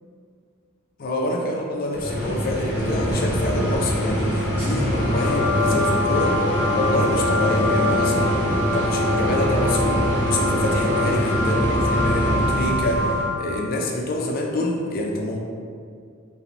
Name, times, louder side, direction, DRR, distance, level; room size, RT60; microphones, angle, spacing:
voice 1, 1.0-6.4 6.7-8.3 8.7-13.1 13.4-15.4, left 1 dB, 45° left, 0 dB, 0.3 m, -26 dB
sound 1, 1.9-13.3, equal, 5° right, 0.9 m, -24 dB
sound 2, 4.9-13.7, left 2 dB, 70° right, 0.3 m, -25 dB
2.6 x 2.0 x 3.1 m, 2.1 s
head